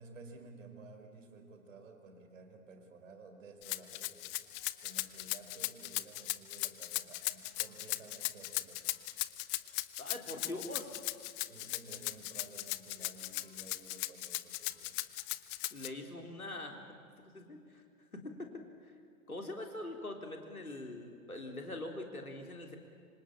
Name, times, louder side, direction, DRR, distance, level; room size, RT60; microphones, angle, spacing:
voice 1, 0.0-4.4 4.8-9.0 11.5-15.0, right 3 dB, 60° right, 5 dB, 4.6 m, -54 dB
Rattle (instrument), 3.6-15.9, left 20 dB, 25° left, 0.8 m, -37 dB
voice 2, 10.0-10.9 15.7-16.8 17.3-17.8 18.1-18.6 19.3-22.8, left 1 dB, 85° left, 3 dB, 3.8 m, -43 dB
26.0 x 26.0 x 8.7 m, 2.2 s
figure-of-eight pair, 105°, 42 cm